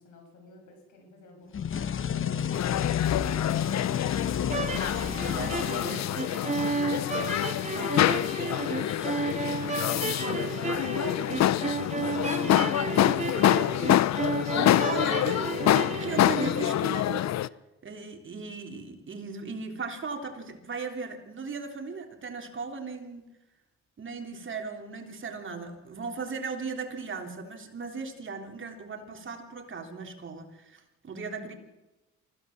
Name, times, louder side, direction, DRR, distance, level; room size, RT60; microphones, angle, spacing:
voice 1, 0.0-3.0 31.3-31.6, left 3 dB, 80° left, 2 dB, 7.9 m, -51 dB
sound 1, 1.5-6.4, left 8 dB, 45° left, 1.0 m, -31 dB
sound 2, 2.5-17.5, left 12 dB, 60° left, 0.7 m, -26 dB
sound 3, 4.4-16.7, right 4 dB, 25° right, 1.9 m, -33 dB
voice 2, 4.7-6.0 13.5-13.7 14.9-15.4 15.9-17.3 17.8-23.3 24.0-31.5, right 4 dB, 40° right, 4 dB, 3.4 m, -37 dB
25.0 x 15.5 x 7.2 m, 1.0 s
cardioid pair, 90°, 30 cm